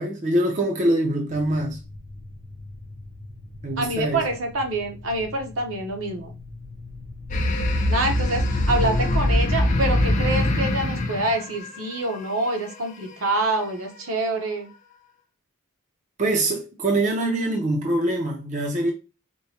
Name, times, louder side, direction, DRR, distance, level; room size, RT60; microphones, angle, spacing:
voice 1, 0.0-1.8 3.6-4.2 16.2-18.9, right 1 dB, 35° right, 0.5 m, -24 dB
sound 1, 1.3-10.6, left 3 dB, 85° right, 1.4 m, -42 dB
voice 2, 3.8-6.3 7.9-14.7, right 2 dB, 70° right, 0.8 m, -26 dB
sound 2, 7.3-12.2, left 1 dB, 35° left, 0.5 m, -22 dB
4.5 x 2.1 x 2.8 m
head